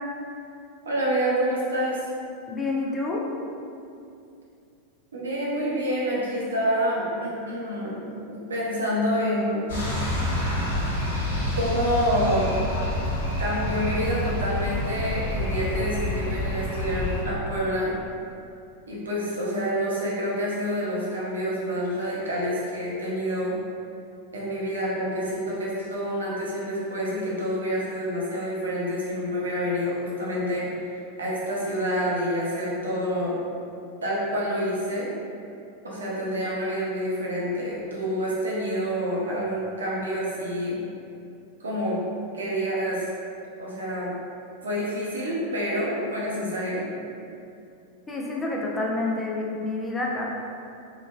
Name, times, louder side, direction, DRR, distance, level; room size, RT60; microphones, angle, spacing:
voice 1, 0.8-2.0 5.1-8.0 8.3-9.7 11.4-12.5 13.4-17.9 18.9-23.6 24.3-33.4 34.0-35.1 35.8-40.8 41.6-42.0 42.3-43.1 43.6-44.1 44.6-46.8, equal, 70° right, -6 dB, 0.6 m, -27 dB
voice 2, 2.5-3.2 48.1-50.3, left 2 dB, 15° left, -3 dB, 0.4 m, -28 dB
sound 1, 9.7-17.2, left 1 dB, 60° left, 0.9 m, -28 dB
3.0 x 2.2 x 2.4 m, 2.6 s
figure-of-eight pair, 90°, 0 cm